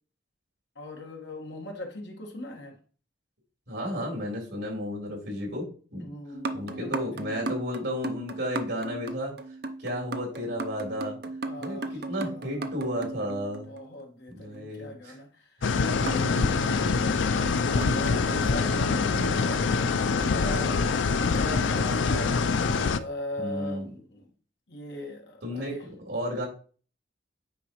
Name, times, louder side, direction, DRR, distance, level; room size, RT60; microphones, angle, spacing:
voice 1, 0.7-2.8 6.0-7.3 11.4-12.7 13.7-19.8 20.3-22.4 22.9-24.3 24.7-25.9, left 1 dB, 70° left, 2 dB, 1.5 m, -40 dB
voice 2, 3.7-6.1 6.5-9.3 9.8-11.2 11.6-13.7 14.3-15.1 15.6-15.7 18.9-19.3 23.4-23.9 25.4-26.5, equal, 70° right, -2 dB, 3.8 m, -33 dB
sound 1, 6.3-14.0 16.1-19.0 20.2-21.3 21.9-22.2 22.7-22.8, right 3 dB, 55° right, 0.7 m, -37 dB
sound 2, 15.6-23.0, left 4 dB, 85° left, 0.5 m, -25 dB
9.1 x 4.9 x 3.1 m, 0.40 s
head